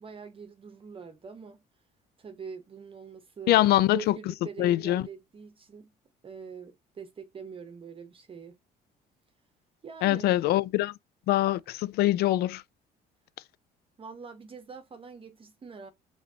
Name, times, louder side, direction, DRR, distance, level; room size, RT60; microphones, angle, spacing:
voice 1, 0.0-1.6 2.2-3.6 3.9-5.9 6.2-8.6 9.8-10.3 14.0-15.9, right 5 dB, 30° right, 0.9 m, -44 dB
voice 2, 3.5-4.2 4.6-5.0 10.0-10.9 11.3-12.6, left 15 dB, 70° left, 0.4 m, -23 dB
5.1 x 3.3 x 2.7 m
cardioid pair, 110°, 17 cm